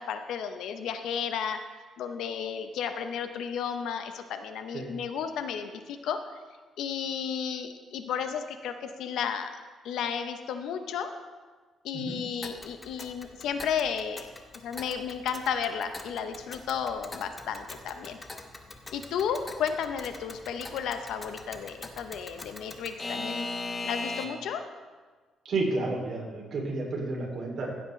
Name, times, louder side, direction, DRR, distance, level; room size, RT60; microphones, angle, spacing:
voice 1, 0.0-1.6 2.0-6.2 6.8-9.6 9.8-11.1 11.8-14.3 14.5-18.2 18.9-23.5 23.8-24.6, left 7 dB, 80° left, 8 dB, 0.7 m, -33 dB
Alarm / Clock, 12.4-24.6, left 2 dB, 25° left, 0.9 m, -40 dB
voice 2, 25.4-27.8, right 2 dB, 55° right, -1 dB, 2.7 m, -31 dB
15.0 x 8.0 x 3.2 m, 1.4 s
cardioid pair, 90°, 0 cm